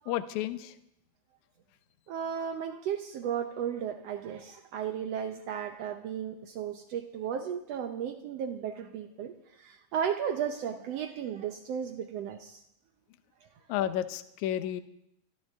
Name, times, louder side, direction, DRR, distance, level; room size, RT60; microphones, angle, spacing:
voice 1, 0.1-0.8 13.7-14.8, left 12 dB, 75° left, 12 dB, 1.9 m, -31 dB
voice 2, 2.1-12.6, right 8 dB, 80° right, 7 dB, 1.4 m, -35 dB
24.5 x 13.5 x 3.6 m, 0.79 s
omnidirectional pair, 3.8 m